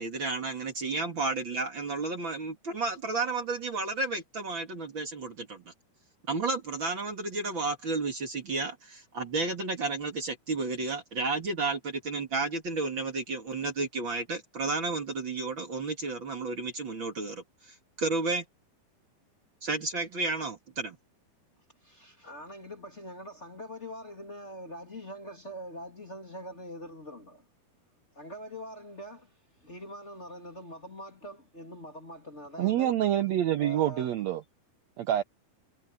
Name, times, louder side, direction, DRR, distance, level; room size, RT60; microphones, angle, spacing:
voice 1, 0.0-5.7 6.3-18.4 19.6-21.0, right 3 dB, 40° right, 2.3 m, -32 dB
voice 2, 21.8-27.5 28.1-29.3 29.6-33.0 33.6-34.1, equal, 20° left, 2.6 m, -43 dB
voice 3, 32.6-34.4 35.0-35.2, right 12 dB, 80° right, 1.5 m, -26 dB
omnidirectional pair, 4.4 m